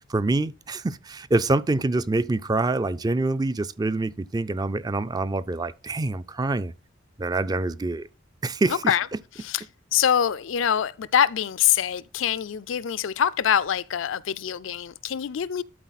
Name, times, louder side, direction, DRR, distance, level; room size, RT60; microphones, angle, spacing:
voice 1, 0.1-6.7 7.2-8.1 8.4-8.9, right 2 dB, 20° right, 0.4 m, -25 dB
voice 2, 8.7-9.1 9.4-9.6 9.9-15.6, left 9 dB, 75° left, 0.4 m, -24 dB
12.0 x 4.1 x 4.1 m
head